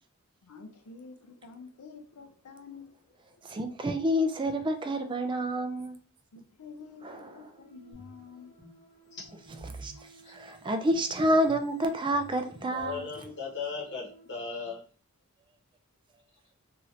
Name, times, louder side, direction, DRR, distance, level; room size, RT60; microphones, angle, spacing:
voice 1, 0.4-3.0 6.3-8.6, left 5 dB, 85° left, 0.5 m, -49 dB
voice 2, 3.4-6.0 7.0-7.3 9.7-13.0, equal, 20° right, 0.4 m, -29 dB
sound 1, 6.8-14.3, right 2 dB, 25° left, 0.6 m, -58 dB
sound 2, 7.9-8.2 8.6-8.8 9.3-10.0 10.9-11.7 12.1-13.1, right 1 dB, 55° right, 1.0 m, -48 dB
voice 3, 12.7-14.8, left 5 dB, 55° left, 0.9 m, -37 dB
2.8 x 2.4 x 3.1 m
head